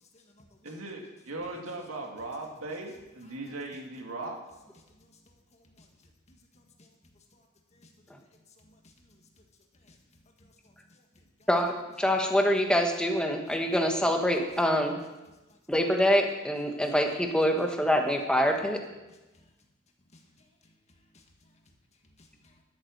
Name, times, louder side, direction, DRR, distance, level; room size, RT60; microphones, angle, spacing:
voice 1, 0.1-0.8 5.0-5.9 6.3-6.9 7.3-7.4 7.7-8.3 8.6-9.4 9.7-10.0 10.4-11.5 15.5-15.6 16.7-16.8 19.3-19.4 20.1-20.5 21.1-21.2 22.2-22.6, left 1 dB, 35° left, 1.6 m, -61 dB
voice 2, 0.6-4.4, right 2 dB, 90° right, 2.4 m, -38 dB
voice 3, 11.5-15.0 15.7-18.8, equal, 5° left, 1.3 m, -25 dB
11.0 x 8.7 x 6.6 m
head